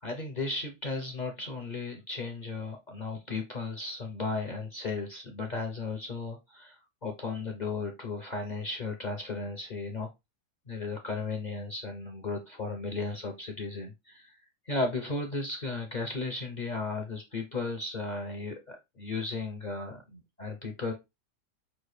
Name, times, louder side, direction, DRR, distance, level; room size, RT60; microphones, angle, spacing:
voice 1, 0.0-10.1 10.7-14.3 14.7-20.9, left 3 dB, 50° left, 3 dB, 0.5 m, -35 dB
6.0 x 2.5 x 3.2 m, 0.22 s
omnidirectional pair, 1.7 m